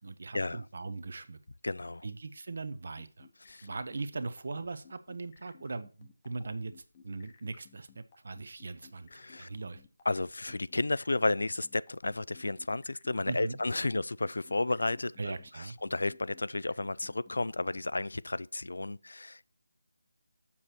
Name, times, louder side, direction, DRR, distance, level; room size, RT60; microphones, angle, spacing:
voice 1, 0.0-1.4 2.0-3.3 3.6-6.7 7.0-9.1 9.4-9.8 13.3-13.6 15.2-15.8, right 3 dB, 55° right, 0.8 m, -39 dB
voice 2, 1.6-2.1 3.5-3.7 9.1-9.5 10.1-15.4 15.8-19.5, left 2 dB, 85° left, 0.3 m, -32 dB
sound 1, 3.0-17.8, left 6 dB, 20° left, 0.8 m, -58 dB
sound 2, 6.8-7.4 7.7-7.8 8.7-10.7 12.0-12.2 13.2-13.5 13.8-14.2 14.4-14.6, left 3 dB, 50° left, 1.1 m, -62 dB
7.2 x 6.4 x 4.3 m
figure-of-eight pair, 170°, 0 cm